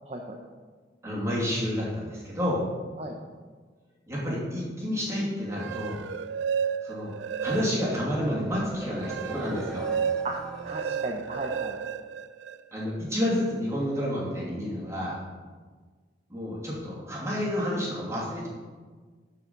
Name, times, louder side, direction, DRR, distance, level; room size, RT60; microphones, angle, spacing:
voice 1, 0.1-0.4 3.0-3.2 10.2-11.8, right 2 dB, 35° right, 1 dB, 0.7 m, -35 dB
voice 2, 1.0-2.6 4.1-6.0 6.8-7.1 7.4-9.9 12.7-15.2 16.3-18.5, left 1 dB, 15° right, -6 dB, 2.5 m, -30 dB
sound 1, 5.4-8.1 8.5-12.8, right 7 dB, 75° right, 0.3 m, -32 dB
sound 2, 8.1-12.1, equal, 5° left, 0.5 m, -41 dB
11.0 x 4.8 x 5.2 m, 1.5 s
head